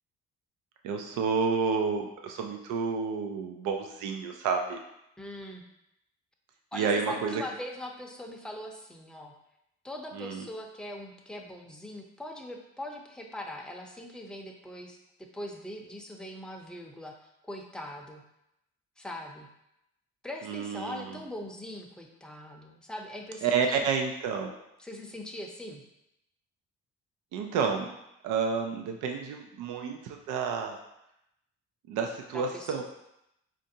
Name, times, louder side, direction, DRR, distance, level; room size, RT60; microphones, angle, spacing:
voice 1, 0.8-4.8 6.7-7.4 10.2-10.4 20.4-21.1 23.4-24.5 27.3-27.9 28.2-30.8 31.9-32.8, right 5 dB, 90° right, 3 dB, 0.5 m, -30 dB
voice 2, 5.2-5.6 6.7-9.3 9.8-15.0 15.3-18.2 19.0-19.5 20.2-23.8 24.8-25.8 32.3-32.8, left 1 dB, 5° left, 1 dB, 0.5 m, -41 dB
4.3 x 2.5 x 2.7 m, 0.83 s
cardioid pair, 90°, 30 cm